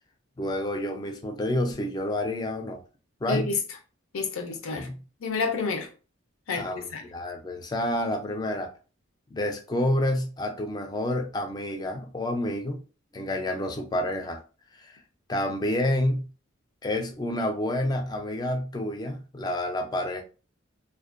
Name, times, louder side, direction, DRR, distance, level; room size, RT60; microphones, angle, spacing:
voice 1, 0.4-2.8 3.2-3.5 4.7-5.0 6.6-8.7 9.3-12.8 13.1-14.4 14.7-15.0 15.3-16.3 16.8-20.2, left 1 dB, 20° left, 0.3 m, -29 dB
voice 2, 3.3-3.6 4.1-4.9 5.2-5.9 6.5-7.0, left 4 dB, 80° left, 0.6 m, -29 dB
2.4 x 2.1 x 2.5 m
head